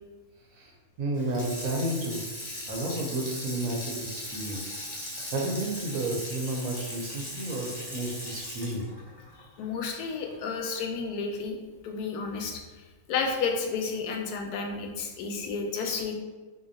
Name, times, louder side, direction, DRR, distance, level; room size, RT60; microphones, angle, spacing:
voice 1, 0.5-2.2 2.7-4.8 5.3-8.9, right 1 dB, 70° right, -1 dB, 1.1 m, -32 dB
Water tap faucet / Sink (filling or washing), 1.1-10.4 10.8-10.9, left 1 dB, 35° left, 0.3 m, -39 dB
voice 2, 9.6-11.6 11.8-12.6 13.1-16.1, left 5 dB, 85° left, 2 dB, 1.1 m, -31 dB
3.8 x 2.7 x 2.6 m, 1.3 s
omnidirectional pair, 1.6 m